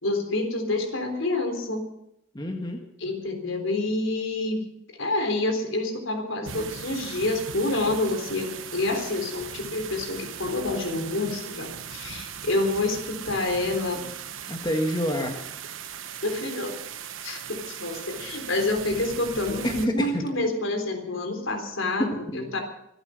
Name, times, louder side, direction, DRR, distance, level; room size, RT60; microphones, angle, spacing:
voice 1, 0.0-1.8 3.0-4.7 5.0-14.1 16.2-16.8 17.2-22.6, left 2 dB, 80° left, 4 dB, 3.8 m, -28 dB
voice 2, 2.3-2.8 14.5-15.4 19.6-20.3 22.0-22.5, equal, 20° left, 3 dB, 1.7 m, -28 dB
sound 1, 6.4-19.9, right 8 dB, 85° right, 1.1 m, -38 dB
25.5 x 8.9 x 6.4 m, 0.78 s
head